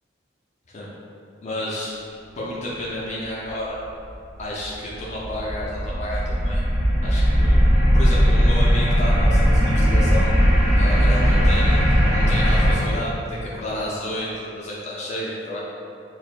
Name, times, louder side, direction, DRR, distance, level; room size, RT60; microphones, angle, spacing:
voice 1, 1.4-1.9 2.3-3.8 4.4-6.6 7.0-10.3 10.7-15.6, left 1 dB, 40° left, -7 dB, 0.5 m, -31 dB
sound 1, 4.4-12.8, equal, 85° right, 0.9 m, -18 dB
6.2 x 2.1 x 2.4 m, 2.5 s
head